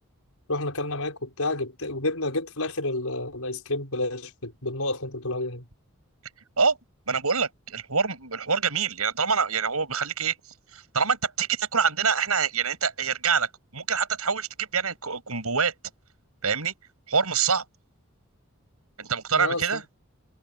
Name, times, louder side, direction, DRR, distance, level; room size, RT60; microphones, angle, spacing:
voice 1, 0.5-5.6 19.3-19.8, left 2 dB, 80° left, 5.8 m, -30 dB
voice 2, 7.1-10.3 10.7-15.7 16.4-16.7 17.1-17.6 19.0-19.8, right 5 dB, 85° right, 6.5 m, -25 dB
head